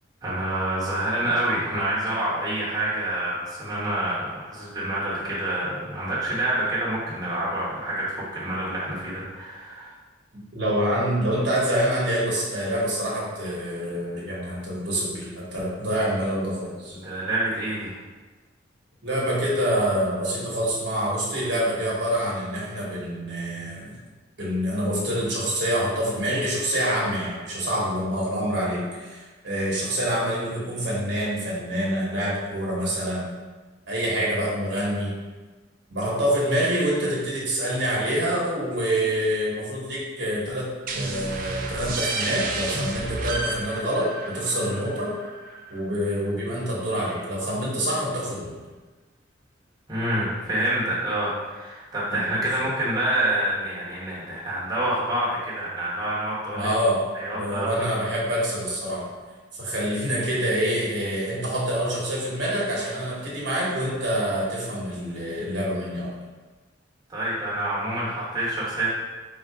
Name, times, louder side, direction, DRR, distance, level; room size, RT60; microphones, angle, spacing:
voice 1, 0.2-10.0 16.9-17.9 49.9-56.7 57.1-57.9 67.1-68.9, right 1 dB, 20° right, -8 dB, 1.0 m, -27 dB
voice 2, 10.5-17.0 19.0-24.0 24.4-33.3 33.9-35.1 35.9-40.7 40.9-45.1 45.7-48.5 52.1-52.7 56.5-57.1 57.4-59.1 59.6-66.1, equal, 65° right, -5 dB, 1.1 m, -26 dB
sound 1, 40.9-46.3, right 2 dB, 45° right, 0.4 m, -31 dB
3.8 x 2.5 x 4.6 m, 1.3 s
head